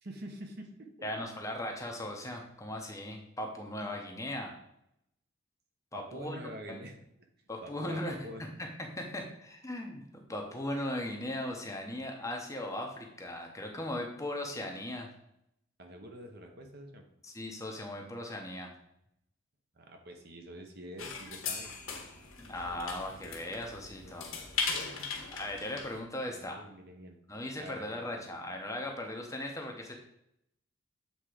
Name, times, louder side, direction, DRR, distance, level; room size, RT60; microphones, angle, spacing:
voice 1, 0.0-1.1 5.9-6.9 7.6-8.5 15.8-17.0 19.7-21.7 24.7-25.1 26.3-27.2 27.6-28.0, equal, 50° right, 3 dB, 1.0 m, -46 dB
voice 2, 1.0-4.5 5.9-6.8 7.5-8.2 8.6-15.1 17.2-18.7 22.4-24.3 25.3-26.6 27.3-30.0, left 1 dB, 15° left, 2 dB, 0.9 m, -38 dB
sound 1, 21.0-26.0, left 5 dB, 75° left, 1.5 m, -38 dB
7.8 x 3.6 x 5.0 m, 0.78 s
head